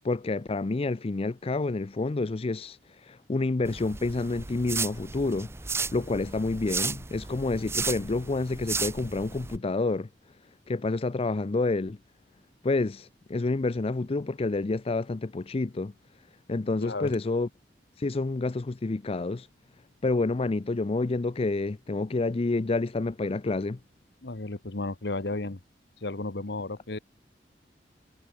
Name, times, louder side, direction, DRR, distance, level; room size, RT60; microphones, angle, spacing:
voice 1, 0.0-5.5 5.9-10.1 10.7-12.0 12.6-15.9 16.5-17.5 18.0-19.5 20.0-23.8, left 3 dB, 35° left, 0.5 m, -28 dB
sound 1, 3.6-9.6, right 4 dB, 15° right, 0.5 m, -34 dB
voice 2, 16.8-17.1 24.2-25.6 26.0-27.0, left 2 dB, 70° left, 1.3 m, -33 dB
head